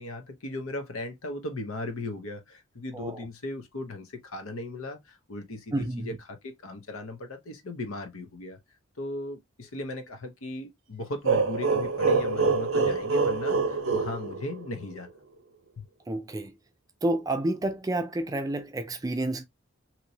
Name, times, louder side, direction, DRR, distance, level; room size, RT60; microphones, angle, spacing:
voice 1, 0.0-8.6 9.0-15.1 15.8-15.9, left 2 dB, 85° left, 0.8 m, -37 dB
voice 2, 2.9-3.3 5.7-6.2 16.1-16.5 17.0-19.4, right 1 dB, 15° right, 0.3 m, -30 dB
sound 1, 11.2-15.0, right 4 dB, 75° right, 0.7 m, -25 dB
2.9 x 2.9 x 2.7 m
head